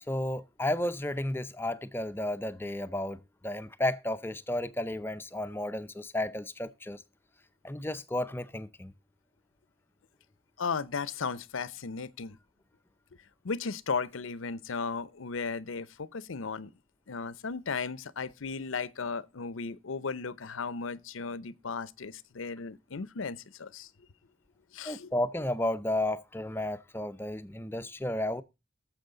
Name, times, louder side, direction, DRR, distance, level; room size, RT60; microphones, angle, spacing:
voice 1, 0.0-7.0 7.6-8.9 24.8-28.4, left 1 dB, 10° left, 0.6 m, -33 dB
voice 2, 10.6-12.4 13.4-16.7 17.1-23.9 24.7-25.1, left 5 dB, 85° left, 0.7 m, -35 dB
18.0 x 7.4 x 3.9 m
head